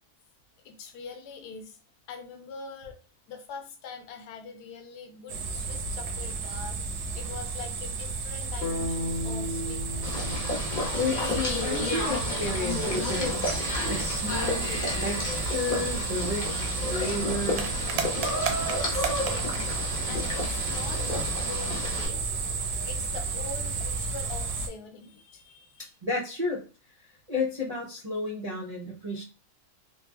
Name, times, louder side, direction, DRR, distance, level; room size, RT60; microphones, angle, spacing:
voice 1, 0.6-1.8 2.1-3.0 3.3-6.8 7.1-10.2 17.0-17.6 18.7-25.9, left 5 dB, 85° left, 6 dB, 1.1 m, -43 dB
sound 1, 5.3-24.7, right 4 dB, 80° right, 1.1 m, -32 dB
sound 2, 8.6-12.7, left 1 dB, 70° left, 0.6 m, -36 dB
sound 3, 10.0-22.1, left 2 dB, 40° left, 0.9 m, -32 dB
voice 2, 11.0-14.7 15.0-17.7 25.8-26.6 27.3-29.2, left 2 dB, 60° right, -5 dB, 0.4 m, -32 dB
3.1 x 2.3 x 2.3 m, 0.34 s
omnidirectional pair, 1.6 m